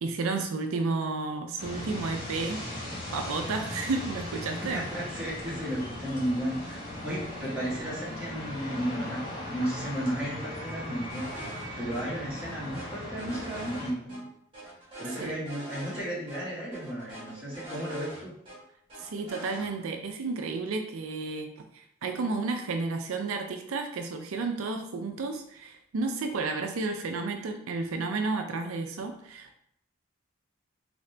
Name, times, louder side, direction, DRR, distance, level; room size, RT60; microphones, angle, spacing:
voice 1, 0.0-2.7 3.1-4.9 15.2-15.4 19.0-29.6, right 3 dB, 80° right, 5 dB, 0.4 m, -32 dB
sound 1, 1.6-13.9, left 1 dB, 55° left, 1.4 m, -38 dB
voice 2, 4.6-11.3 11.8-14.3 15.0-18.3, equal, 5° right, -9 dB, 1.7 m, -34 dB
sound 2, 11.1-11.6 11.9-12.0 12.4-14.2 14.5-16.0 16.3-16.4 16.7-18.6 18.9-19.7, right 1 dB, 25° right, 1.5 m, -43 dB
3.8 x 3.3 x 3.3 m, 0.70 s
head